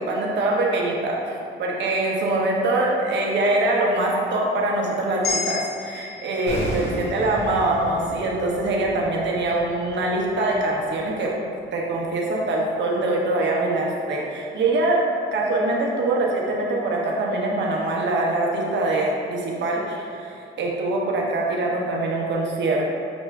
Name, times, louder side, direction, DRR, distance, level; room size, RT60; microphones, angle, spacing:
voice 1, 0.0-11.3 11.7-15.0 15.3-22.8, right 2 dB, 65° right, -2 dB, 0.8 m, -23 dB
sound 1, 5.2-9.5, left 3 dB, 55° left, 0.7 m, -34 dB
sound 2, 6.5-11.5 11.7-11.9, equal, 80° left, 1.5 m, -35 dB
6.0 x 2.1 x 3.5 m, 2.4 s
cardioid pair, 90°, 20 cm